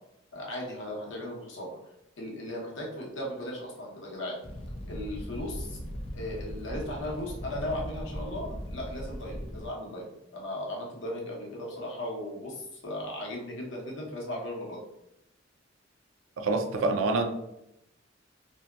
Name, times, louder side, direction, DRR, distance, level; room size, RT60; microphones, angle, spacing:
voice 1, 0.3-1.7 2.2-4.3 4.8-5.8 6.1-10.0 10.3-14.8, left 1 dB, 70° left, -2 dB, 0.8 m, -37 dB
Fire, 4.4-9.7, equal, 30° left, 0.4 m, -39 dB
voice 2, 16.4-17.3, right 3 dB, 90° right, 5 dB, 0.4 m, -26 dB
2.7 x 2.2 x 2.3 m, 0.82 s
head